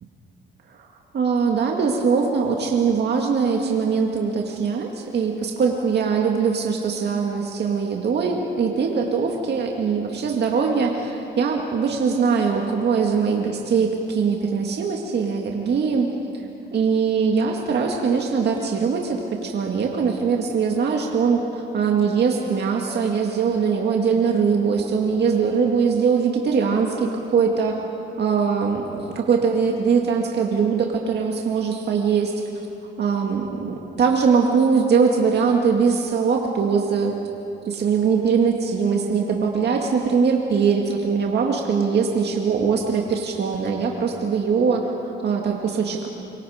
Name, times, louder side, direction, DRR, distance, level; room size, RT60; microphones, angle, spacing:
voice 1, 1.1-16.1 16.7-27.8 28.2-32.3 33.0-37.1 37.7-46.1, right 5 dB, 55° right, 1 dB, 2.0 m, -21 dB
26.0 x 24.5 x 5.1 m, 2.7 s
cardioid pair, 90°, 20 cm